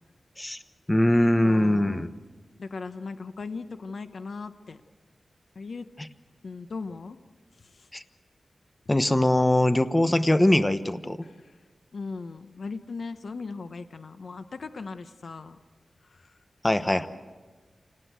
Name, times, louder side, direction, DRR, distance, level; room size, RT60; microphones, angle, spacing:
voice 1, 0.9-2.1 7.9-8.0 8.9-11.2 16.6-17.1, left 1 dB, 15° left, 11 dB, 1.0 m, -22 dB
voice 2, 1.4-2.1 2.6-4.8 5.5-5.9 6.4-7.2 7.6-7.9 11.2-11.6 11.9-15.6 16.0-16.4, left 4 dB, 70° left, 10 dB, 1.0 m, -38 dB
28.0 x 18.5 x 8.1 m, 1.3 s
wide cardioid pair, 75°, 0 cm